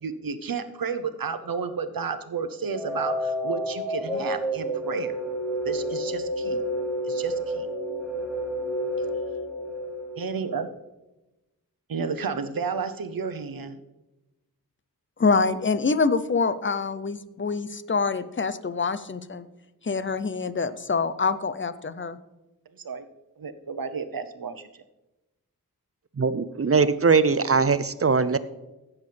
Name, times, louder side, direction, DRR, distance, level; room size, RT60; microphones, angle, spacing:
voice 1, 0.0-5.2 5.6-6.6 7.0-7.7 10.2-10.7 11.9-13.8 22.7-23.1 23.4-24.8, right 5 dB, 70° right, 10 dB, 0.9 m, -32 dB
sound 1, 2.7-10.7, equal, ahead, 2.5 m, -30 dB
voice 2, 15.2-19.5 19.8-22.2, left 4 dB, 35° left, 13 dB, 0.7 m, -25 dB
voice 3, 26.2-28.4, right 4 dB, 40° right, 14 dB, 0.6 m, -21 dB
15.5 x 7.3 x 3.4 m, 1.0 s
wide cardioid pair, 50°, 36 cm